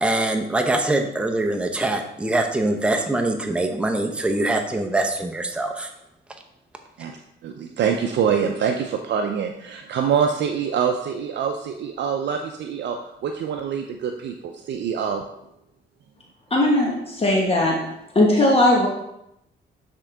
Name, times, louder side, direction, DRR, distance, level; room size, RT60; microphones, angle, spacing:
voice 1, 0.0-5.9, right 2 dB, 5° right, 3 dB, 0.7 m, -23 dB
voice 2, 7.4-15.2, right 7 dB, 60° right, 4 dB, 0.5 m, -25 dB
voice 3, 16.5-17.8 18.1-18.9, left 1 dB, 30° left, -2 dB, 1.2 m, -18 dB
9.8 x 3.7 x 3.4 m, 0.82 s
cardioid pair, 90°, 20 cm